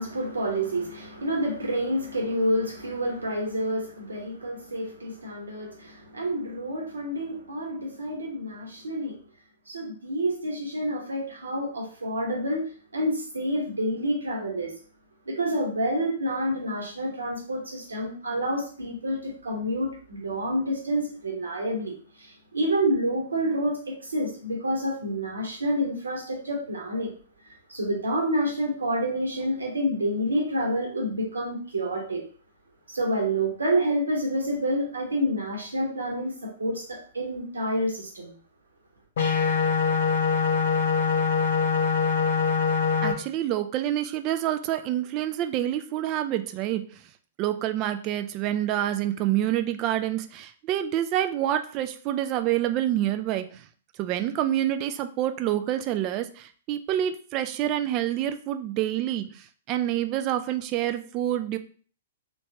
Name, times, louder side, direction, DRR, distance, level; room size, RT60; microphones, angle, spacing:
voice 1, 0.0-9.2 9.7-14.7 15.3-27.1 27.5-32.2 32.9-38.3, equal, 70° right, 0 dB, 1.1 m, -28 dB
sound 1, 39.2-43.1, left 5 dB, 55° left, 0.8 m, -23 dB
voice 2, 43.0-46.8 47.4-53.6 54.0-61.6, right 12 dB, 30° right, 9 dB, 0.3 m, -27 dB
3.2 x 3.1 x 2.7 m, 0.44 s
figure-of-eight pair, 110°, 0 cm